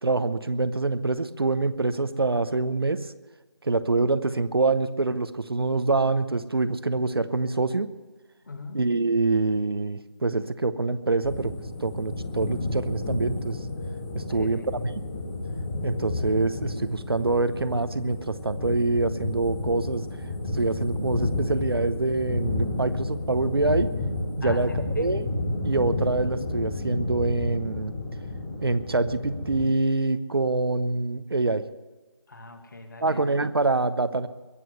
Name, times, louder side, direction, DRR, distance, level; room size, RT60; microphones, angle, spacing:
voice 1, 0.0-3.1 3.6-7.9 8.7-11.5 11.8-13.6 14.1-14.6 15.8-20.0 20.5-23.9 24.4-24.7 25.0-25.2 25.6-27.9 28.6-31.6 33.0-34.3, right 3 dB, 60° right, 12 dB, 0.9 m, -25 dB
voice 2, 8.5-8.8 14.3-14.7 24.4-25.1 32.3-33.2, left 3 dB, 45° left, 6 dB, 2.2 m, -40 dB
sound 1, 11.2-29.7, left 2 dB, 10° left, 0.8 m, -31 dB
22.0 x 7.8 x 7.8 m, 1.3 s
figure-of-eight pair, 165°, 14 cm